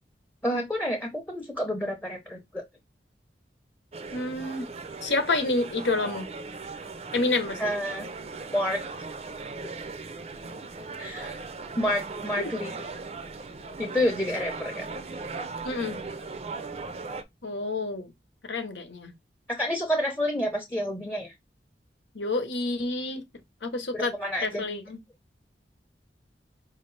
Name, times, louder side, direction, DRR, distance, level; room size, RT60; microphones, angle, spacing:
voice 1, 0.4-2.6 7.6-8.1 8.5-8.8 11.0-11.3 11.8-12.9 13.8-14.9 19.5-21.3 23.9-24.6, left 1 dB, 10° left, 0.7 m, -29 dB
sound 1, 3.9-17.2, right 4 dB, 35° right, 0.5 m, -38 dB
voice 2, 4.1-4.7 5.0-6.3 7.1-7.6 12.4-12.5 15.6-16.0 17.4-18.1 18.4-19.1 22.1-23.3 23.6-24.1 24.4-25.0, left 2 dB, 90° left, 0.9 m, -28 dB
5.0 x 2.7 x 3.2 m
head